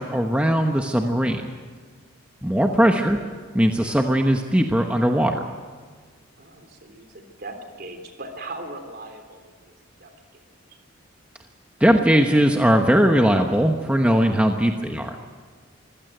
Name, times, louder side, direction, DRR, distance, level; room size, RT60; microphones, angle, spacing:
voice 1, 0.0-1.4 2.4-3.2 3.5-5.4 11.8-15.2, equal, 5° right, 3 dB, 1.0 m, -19 dB
voice 2, 2.6-2.9 6.4-9.7 10.0-10.4 14.4-14.7, right 2 dB, 45° right, 5 dB, 3.2 m, -40 dB
25.0 x 16.0 x 9.1 m, 1.5 s
head